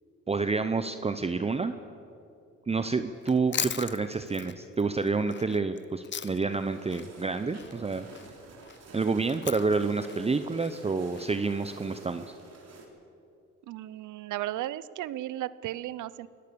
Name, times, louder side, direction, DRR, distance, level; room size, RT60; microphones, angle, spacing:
voice 1, 0.3-1.7 2.7-8.1 8.9-12.2, right 4 dB, 20° right, 10 dB, 0.8 m, -28 dB
Chewing mastication, 3.2-6.6 6.9-11.3, left 8 dB, 40° left, 0.8 m, -39 dB
sound 1, 6.5-12.9, right 3 dB, 55° right, 3.8 m, -50 dB
voice 2, 13.7-16.3, right 14 dB, 80° right, 18 dB, 0.7 m, -35 dB
23.5 x 18.0 x 6.9 m, 2.7 s
cardioid pair, 90°, 30 cm